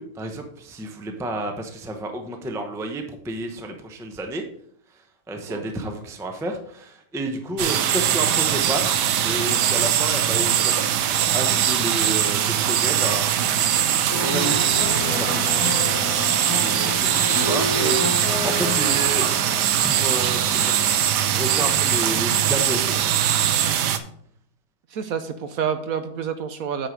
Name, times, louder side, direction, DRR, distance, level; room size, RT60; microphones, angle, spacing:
voice 1, 0.0-4.4 5.3-9.0 9.2-10.8 11.3-13.5 14.2-14.7 15.0-15.5 16.5-18.0 18.3-19.3 19.8-20.8 21.3-23.2, right 1 dB, 5° right, 4 dB, 0.5 m, -30 dB
sound 1, 7.6-24.0, right 10 dB, 80° right, 1.3 m, -21 dB
sound 2, 14.1-20.4, left 3 dB, 65° left, 1.4 m, -30 dB
voice 2, 17.4-17.9 24.9-26.9, right 7 dB, 65° right, 9 dB, 1.0 m, -28 dB
8.8 x 4.7 x 5.2 m, 0.65 s
omnidirectional pair, 1.8 m